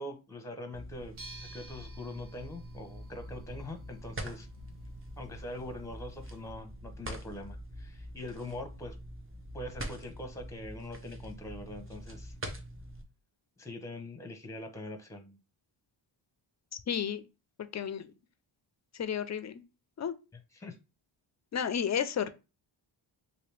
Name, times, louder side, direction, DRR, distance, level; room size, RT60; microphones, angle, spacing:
voice 1, 0.0-4.5 5.2-9.0 9.5-12.3 13.6-15.4 20.5-20.7, left 1 dB, 5° left, 0.8 m, -43 dB
sound 1, 0.7-13.0, equal, 25° right, 0.8 m, -44 dB
sound 2, 1.1-6.5, right 2 dB, 75° right, 1.4 m, -54 dB
voice 2, 16.9-17.2 17.7-18.1 19.0-19.6 20.0-20.1 21.5-22.3, left 8 dB, 35° left, 0.5 m, -32 dB
2.9 x 2.8 x 3.2 m
cardioid pair, 80°, 48 cm